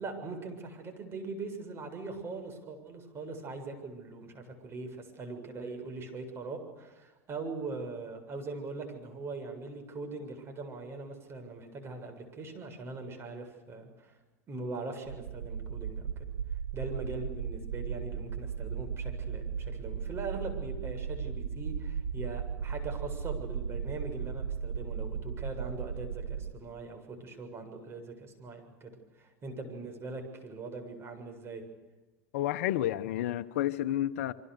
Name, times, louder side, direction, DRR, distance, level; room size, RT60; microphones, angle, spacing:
voice 1, 0.0-14.2 14.5-16.3 16.7-31.6, right 3 dB, 30° right, 7.3 m, -41 dB
sound 1, 15.1-26.5, right 7 dB, 85° right, 1.3 m, -36 dB
voice 2, 32.3-34.3, left 13 dB, 65° left, 1.0 m, -30 dB
28.0 x 24.5 x 6.8 m
hypercardioid pair, 90°, 8 cm